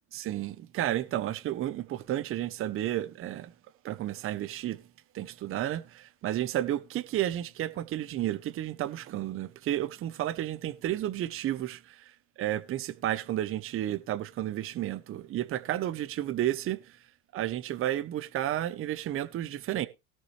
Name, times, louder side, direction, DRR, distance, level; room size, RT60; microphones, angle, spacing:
voice 1, 0.1-3.5 3.8-4.8 5.1-12.1 12.4-16.8 17.3-19.9, right 13 dB, 25° right, 0.8 m, -32 dB
18.0 x 6.2 x 3.2 m
supercardioid pair, 145°, 48 cm